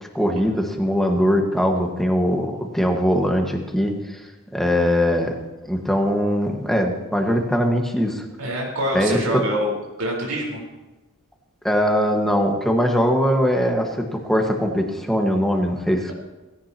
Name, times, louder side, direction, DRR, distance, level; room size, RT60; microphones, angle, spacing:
voice 1, 0.1-4.2 4.5-5.3 5.7-8.2 8.9-9.2 11.6-16.1, equal, ahead, 2 dB, 1.5 m, -21 dB
voice 2, 8.4-9.7 10.0-10.6, equal, 85° right, -2 dB, 4.3 m, -25 dB
18.0 x 16.5 x 2.9 m, 1.1 s
head